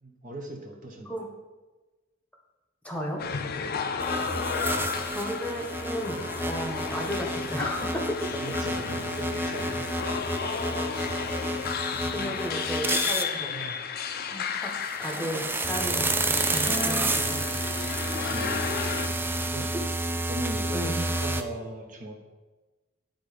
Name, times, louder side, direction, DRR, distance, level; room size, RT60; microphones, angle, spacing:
voice 1, 0.0-1.1 3.9-4.5 8.4-9.9 18.3-18.8 19.5-19.9 20.3-22.2, right 1 dB, 45° right, 1 dB, 1.0 m, -39 dB
voice 2, 2.8-3.2 5.1-8.1 12.1-13.8 14.3-14.7 15.0-17.4 19.6-19.7 20.7-21.0, equal, 5° left, 0 dB, 1.1 m, -34 dB
sound 1, 3.2-19.1, left 6 dB, 50° left, 0.5 m, -33 dB
sound 2, 4.0-13.2 14.7-21.4, right 2 dB, 10° right, 0.4 m, -30 dB
10.5 x 4.0 x 5.0 m, 1.2 s
head